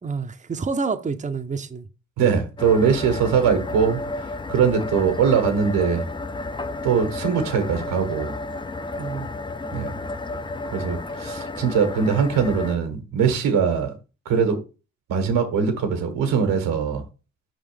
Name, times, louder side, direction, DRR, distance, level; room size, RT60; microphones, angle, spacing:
voice 1, 0.0-1.9 4.6-4.7 9.0-9.3, right 4 dB, 25° right, 0.7 m, -28 dB
voice 2, 2.2-4.0 4.5-6.1 6.8-8.3 9.7-9.9 10.7-13.9 14.2-14.6 15.1-17.0, right 6 dB, 85° right, 1.5 m, -21 dB
sound 1, 2.6-12.8, left 2 dB, 15° left, 0.5 m, -32 dB
5.1 x 3.8 x 5.1 m
supercardioid pair, 55°, 32 cm